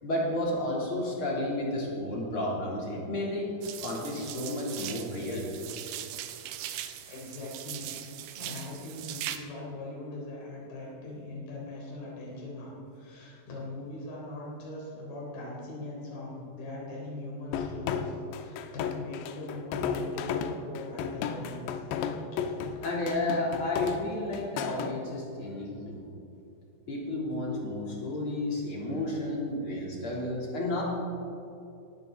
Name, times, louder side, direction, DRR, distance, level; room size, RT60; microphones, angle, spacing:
voice 1, 0.0-3.5 3.8-5.5 22.8-26.1 26.9-30.8, left 1 dB, 30° left, -4 dB, 3.6 m, -32 dB
sound 1, 3.6-9.4, right 12 dB, 90° right, 3.2 m, -40 dB
voice 2, 7.0-7.9 8.4-21.9 22.2-22.8, left 2 dB, 60° left, -5 dB, 5.6 m, -41 dB
sound 2, 17.5-24.9, left 7 dB, 80° left, 2.9 m, -33 dB
18.0 x 16.0 x 4.0 m, 2.7 s
omnidirectional pair, 5.2 m